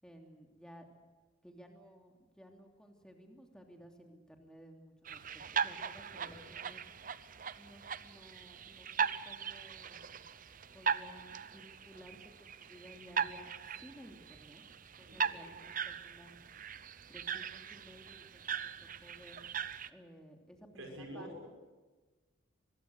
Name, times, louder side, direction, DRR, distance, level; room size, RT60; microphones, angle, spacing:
voice 1, 0.0-1.0 1.4-6.8 7.6-10.0 10.7-14.6 15.0-16.3 17.1-19.5 19.9-21.5, equal, 5° left, 2 dB, 3.0 m, -56 dB
sound 1, 5.0-19.9, right 7 dB, 40° right, 0.8 m, -39 dB
voice 2, 20.8-21.5, equal, 85° right, 2 dB, 5.6 m, -46 dB
24.0 x 21.5 x 8.1 m, 1.3 s
head